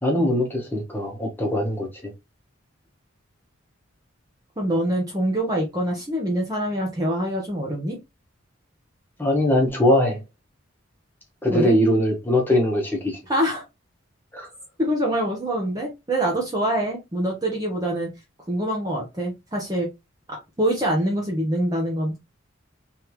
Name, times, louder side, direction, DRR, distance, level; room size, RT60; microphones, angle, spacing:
voice 1, 0.0-2.1 9.2-10.2 11.4-13.2 14.3-14.5, left 1 dB, 10° left, 1.2 m, -21 dB
voice 2, 4.6-8.0 11.5-11.8 13.3-13.6 14.8-18.1 18.5-19.9 20.6-22.2, right 1 dB, 20° right, 0.9 m, -25 dB
3.3 x 3.3 x 3.1 m
head